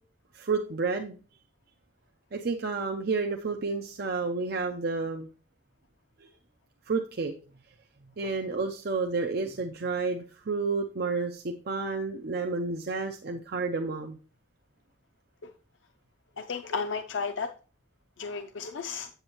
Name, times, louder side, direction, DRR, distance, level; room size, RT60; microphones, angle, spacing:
voice 1, 0.3-1.2 2.3-5.3 6.9-7.3 8.2-14.2, right 4 dB, 55° right, 4 dB, 0.6 m, -30 dB
voice 2, 16.4-17.5 18.2-19.1, left 5 dB, 85° left, 7 dB, 0.5 m, -33 dB
8.0 x 7.9 x 2.9 m, 0.37 s
head